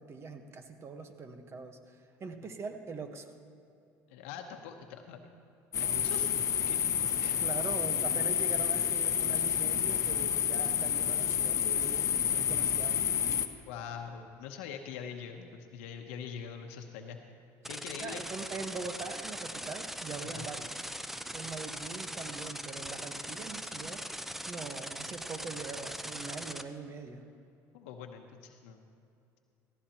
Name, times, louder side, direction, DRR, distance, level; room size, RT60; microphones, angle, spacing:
voice 1, 0.0-3.3 7.4-13.1 18.0-20.9 21.3-24.0 24.5-27.2, right 4 dB, 40° right, 6 dB, 1.3 m, -42 dB
voice 2, 4.1-5.2 5.8-6.3 6.7-6.8 7.2-7.3 13.7-17.2 17.7-18.2 20.3-20.4 27.7-28.8, left 7 dB, 90° left, 4 dB, 0.9 m, -43 dB
sound 1, 5.7-13.5, left 9 dB, 45° left, 0.8 m, -29 dB
sound 2, 17.6-26.6, equal, 5° right, 0.6 m, -40 dB
17.0 x 15.0 x 3.0 m, 2.6 s
supercardioid pair, 95°, 7 cm